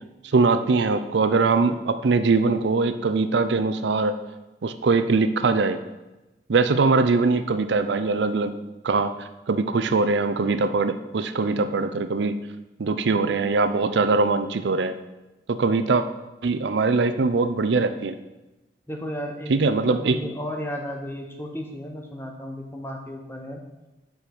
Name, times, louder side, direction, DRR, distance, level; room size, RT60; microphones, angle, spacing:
voice 1, 0.3-4.2 4.6-5.8 6.5-8.5 8.8-9.1 9.5-12.3 12.8-14.9 15.5-16.0 16.4-18.1 19.5-20.2, right 4 dB, 75° right, 11 dB, 0.5 m, -22 dB
voice 2, 18.9-23.6, equal, 10° left, 2 dB, 0.9 m, -34 dB
7.1 x 5.2 x 5.9 m, 1.0 s
head